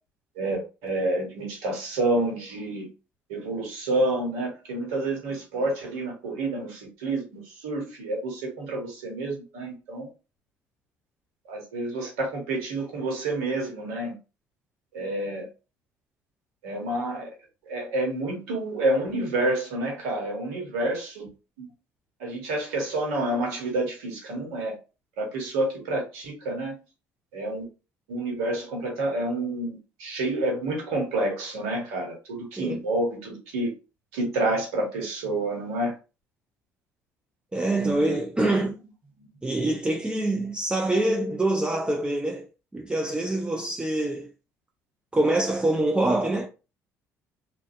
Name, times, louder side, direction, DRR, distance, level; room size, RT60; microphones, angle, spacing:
voice 1, 0.4-2.9 3.3-10.1 11.5-14.1 14.9-15.4 16.6-17.3 17.7-21.3 21.6-21.7 22.2-24.7 25.2-26.8 27.3-27.7 28.1-33.7 34.1-35.9, right 2 dB, 80° right, 1.0 m, -29 dB
voice 2, 37.5-38.8 39.4-42.5 42.7-44.3 45.1-46.5, right 1 dB, 15° right, 0.4 m, -25 dB
2.4 x 2.2 x 2.4 m
hypercardioid pair, 60°, 7 cm